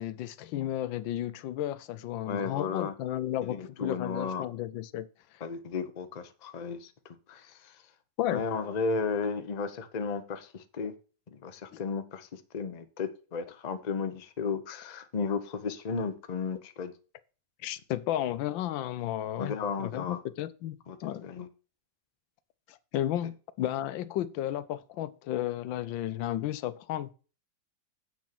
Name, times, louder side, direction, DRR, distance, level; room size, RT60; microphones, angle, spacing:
voice 1, 0.0-5.1 8.2-8.4 11.7-11.8 17.6-21.3 22.7-27.1, left 12 dB, 85° left, 1.4 m, -33 dB
voice 2, 2.3-2.9 3.4-4.5 5.4-7.7 8.3-10.9 11.3-16.9 19.4-20.2 20.9-21.5, left 5 dB, 35° left, 0.6 m, -34 dB
8.2 x 6.3 x 5.9 m
omnidirectional pair, 2.0 m